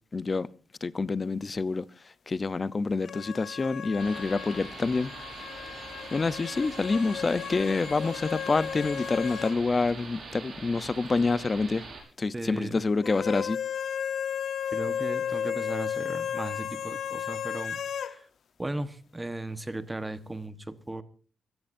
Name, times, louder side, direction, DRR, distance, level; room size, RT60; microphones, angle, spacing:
voice 1, 0.1-0.5 0.8-1.8 2.3-5.1 6.1-11.8 12.2-13.6, left 3 dB, 25° left, 0.7 m, -27 dB
sound 1, 3.0-9.6 9.9-10.0 13.0-18.1, left 8 dB, 65° left, 0.9 m, -34 dB
sound 2, 4.0-12.0, right 4 dB, 50° right, 6.2 m, -43 dB
voice 2, 12.3-12.8 14.7-18.3 18.6-21.0, right 2 dB, 10° right, 1.2 m, -36 dB
25.0 x 16.0 x 2.6 m
wide cardioid pair, 145°, 0 cm